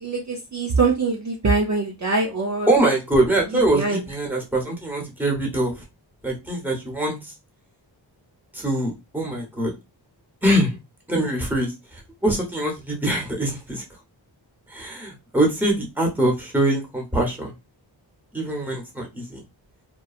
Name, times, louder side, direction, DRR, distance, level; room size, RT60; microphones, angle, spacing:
voice 1, 0.0-2.7 3.7-4.0, right 3 dB, 40° right, -1 dB, 0.5 m, -23 dB
voice 2, 2.7-5.7 6.2-7.2 8.5-9.7 10.4-10.8 11.1-11.7 12.2-13.8 14.7-17.5 18.3-19.4, right 1 dB, 5° right, 1 dB, 1.0 m, -23 dB
3.0 x 2.2 x 2.3 m, 0.23 s
wide cardioid pair, 80°, 46 cm